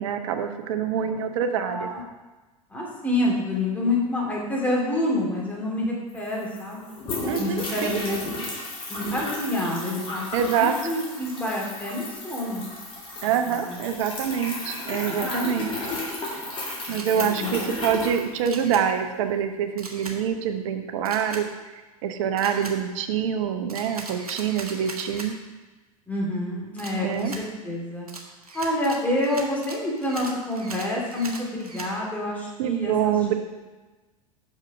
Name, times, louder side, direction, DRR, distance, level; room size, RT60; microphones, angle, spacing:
voice 1, 0.0-1.9 7.3-8.0 10.3-10.7 13.2-15.7 16.9-21.4 22.0-25.4 27.0-27.3 32.6-33.3, right 8 dB, 55° right, 7 dB, 0.8 m, -25 dB
voice 2, 1.6-2.0 2.7-6.8 7.4-8.2 8.9-10.3 10.5-12.6 13.2-13.8 14.9-15.6 16.9-17.6 26.1-28.1 28.5-33.2, left 1 dB, 10° left, -4 dB, 2.3 m, -28 dB
flushed it, 6.1-18.9, left 2 dB, 30° left, 2.1 m, -34 dB
Camera, 16.9-17.3 18.5-18.8 19.8-20.2 21.0-21.4 22.4-22.8 23.7-25.3 26.8-27.4 28.1-31.9, right 3 dB, 85° right, 0.9 m, -39 dB
6.2 x 5.3 x 5.2 m, 1.2 s
figure-of-eight pair, 80°, 19 cm